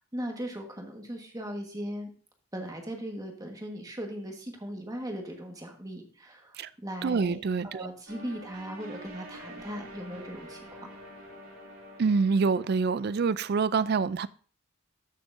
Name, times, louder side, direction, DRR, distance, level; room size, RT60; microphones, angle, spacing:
voice 1, 0.1-2.1 2.5-10.9, equal, 15° right, 1.4 m, -38 dB
voice 2, 7.0-7.9 12.0-14.3, right 5 dB, 45° right, 0.3 m, -26 dB
sound 1, 8.1-13.2, equal, 80° right, 2.7 m, -46 dB
13.5 x 6.5 x 2.6 m
head